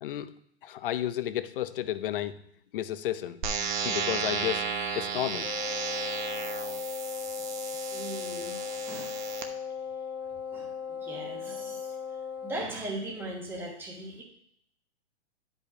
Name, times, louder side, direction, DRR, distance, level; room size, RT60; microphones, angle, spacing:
voice 1, 0.0-0.3 0.6-2.5 2.7-3.4 3.8-4.7 4.9-5.6, left 12 dB, 50° left, 13 dB, 0.6 m, -32 dB
sound 1, 3.4-9.4, right 6 dB, 45° right, 1.1 m, -33 dB
Wind instrument woodwind instrument, 5.4-12.7, left 7 dB, 80° left, 2.0 m, -37 dB
voice 2, 7.9-8.6 8.9-9.2 10.5-11.9 12.4-14.2, right 1 dB, 5° right, -1 dB, 1.2 m, -39 dB
10.0 x 5.5 x 4.8 m, 0.69 s
hypercardioid pair, 155°, 34 cm